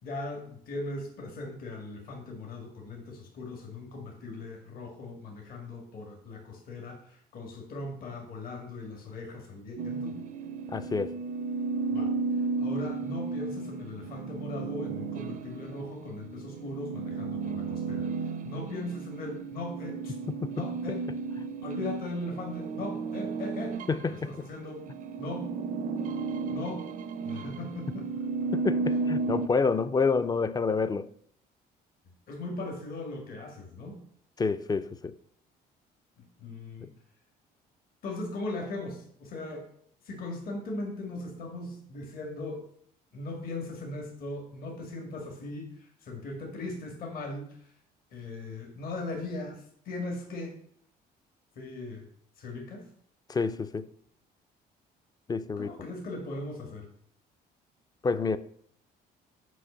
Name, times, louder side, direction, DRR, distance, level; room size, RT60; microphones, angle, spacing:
voice 1, 0.0-10.2 11.9-20.1 20.5-21.1 21.6-23.8 24.1-24.9 25.2-25.6 26.5-26.9 27.2-28.5 32.3-34.0 36.2-36.9 38.0-39.7 40.0-42.6 43.1-47.7 48.1-50.6 51.6-52.1 52.4-52.9 55.6-56.9, left 2 dB, 60° left, 2.0 m, -39 dB
sound 1, 9.8-24.3 24.7-29.5, right 4 dB, 55° right, 0.5 m, -34 dB
voice 2, 10.7-11.2 20.3-20.5 23.9-24.3 28.5-31.1 34.4-35.1 36.8-36.9 53.3-53.9 55.3-55.7 58.0-58.4, left 4 dB, 25° left, 0.5 m, -28 dB
6.3 x 5.2 x 6.8 m
cardioid pair, 110°, 17 cm